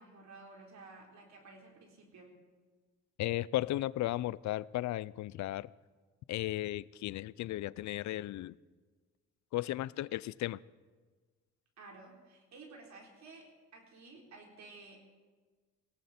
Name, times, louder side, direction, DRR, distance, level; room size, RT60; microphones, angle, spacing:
voice 1, 0.0-2.3 11.8-15.0, right 3 dB, 65° right, 4.0 m, -53 dB
voice 2, 3.2-5.7 6.3-8.6 9.5-10.6, left 15 dB, 70° left, 0.5 m, -35 dB
18.5 x 17.5 x 4.3 m
cardioid pair, 90°, 30 cm